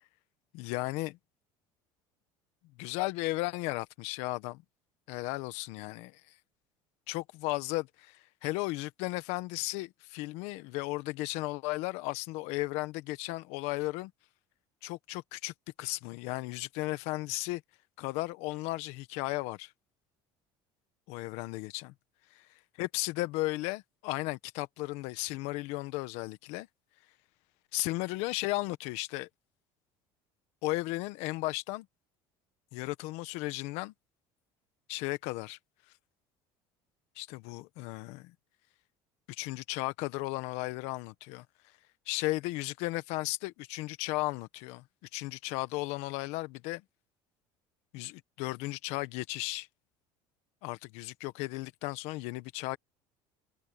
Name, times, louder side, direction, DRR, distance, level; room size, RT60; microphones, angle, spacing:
voice 1, 0.5-1.2 2.8-4.6 5.1-6.3 7.1-14.1 14.8-17.6 18.0-19.7 21.1-21.9 22.3-22.5 22.8-26.7 27.7-29.3 30.6-31.9 32.7-33.9 34.9-35.6 37.1-38.3 39.3-41.4 42.1-44.8 45.1-46.8 47.9-49.7 50.6-52.8, left 20 dB, 75° left, 1.4 m, -35 dB
cardioid pair, 125°, 11 cm